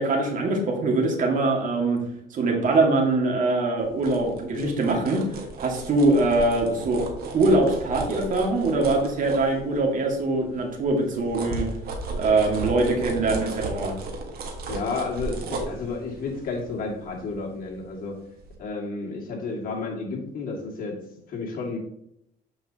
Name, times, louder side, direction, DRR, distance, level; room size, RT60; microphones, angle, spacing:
voice 1, 0.0-2.0 2.3-5.2 5.6-7.1 7.3-11.7 12.1-13.9, right 2 dB, 50° right, 0 dB, 2.0 m, -23 dB
sound 1, 3.8-10.1 10.5-18.0 18.4-18.5, right 3 dB, 65° right, 1.6 m, -35 dB
voice 2, 13.3-13.6 14.7-18.2 18.6-21.0 21.3-21.8, left 4 dB, 55° left, -2 dB, 2.2 m, -31 dB
7.5 x 5.5 x 2.9 m, 0.76 s
cardioid pair, 110°, 17 cm